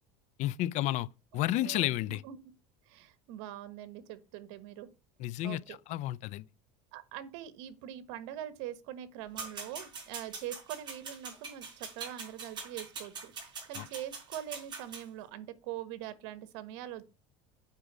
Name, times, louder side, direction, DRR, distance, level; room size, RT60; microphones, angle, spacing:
voice 1, 0.4-1.1 1.3-2.2 5.2-6.5 13.8-13.9, left 14 dB, 50° left, 0.4 m, -31 dB
voice 2, 1.6-2.4 2.9-4.9 5.4-5.6 6.9-17.1, right 12 dB, 80° right, 1.3 m, -43 dB
sound 1, 9.4-15.0, right 5 dB, 30° right, 5.0 m, -43 dB
8.2 x 5.0 x 6.1 m
cardioid pair, 135°, 15 cm